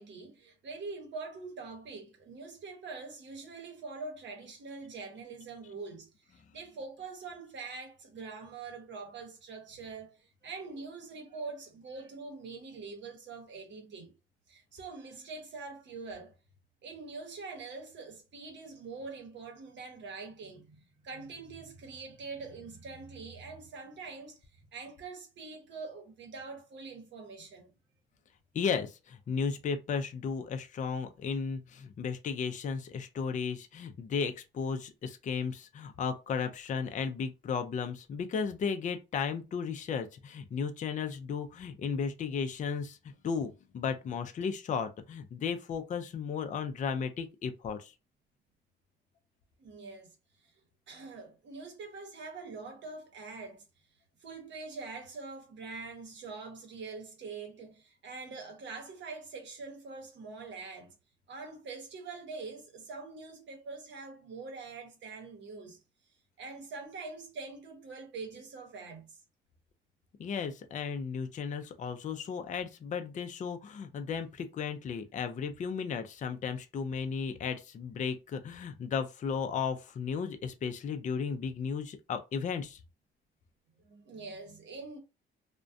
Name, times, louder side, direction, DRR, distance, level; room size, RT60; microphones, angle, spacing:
voice 1, 0.0-14.1 14.5-16.3 16.8-27.7 49.6-50.1 50.9-53.6 54.2-60.9 61.3-65.8 66.4-69.2 71.8-71.9 83.8-85.0, right 4 dB, 65° right, 0.9 m, -44 dB
voice 2, 28.5-47.9 70.2-82.8, left 6 dB, 40° left, 0.4 m, -34 dB
2.3 x 2.1 x 2.5 m
cardioid pair, 90°, 20 cm